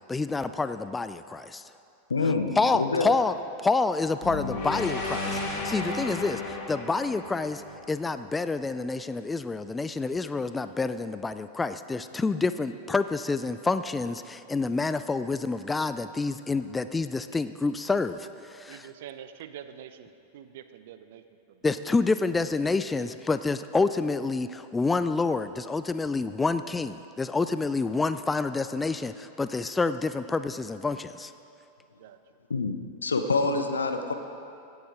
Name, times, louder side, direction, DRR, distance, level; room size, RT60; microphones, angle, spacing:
voice 1, 0.1-1.6 2.6-3.4 3.6-7.6 7.9-18.9 21.6-31.3, left 3 dB, 10° left, 12 dB, 0.4 m, -28 dB
voice 2, 2.1-3.1 32.5-34.1, left 3 dB, 75° left, 7 dB, 0.9 m, -27 dB
sound 1, 4.2-8.5, left 3 dB, 40° left, 2.3 m, -33 dB
voice 3, 18.7-21.2 21.5-21.6 32.0-32.2, right 9 dB, 55° right, 11 dB, 0.6 m, -45 dB
16.5 x 8.1 x 5.0 m, 2.6 s
figure-of-eight pair, 90°, 0 cm